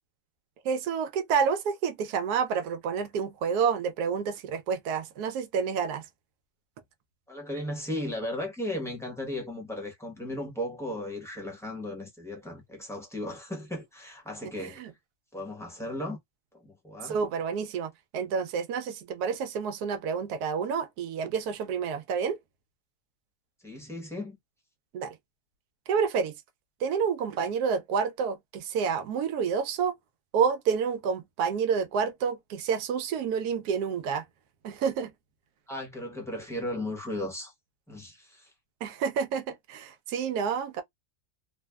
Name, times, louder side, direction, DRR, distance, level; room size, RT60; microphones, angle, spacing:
voice 1, 0.6-6.0 14.4-14.9 17.0-22.4 24.9-25.2 25.9-26.3 26.8-29.9 30.3-34.2 34.6-35.1 38.8-40.8, right 6 dB, 90° right, 1.1 m, -29 dB
voice 2, 7.3-14.8 15.3-16.2 16.6-17.2 23.6-24.4 35.7-37.5 37.9-38.5, left 1 dB, 5° left, 0.6 m, -36 dB
3.2 x 2.0 x 2.2 m
omnidirectional pair, 1.6 m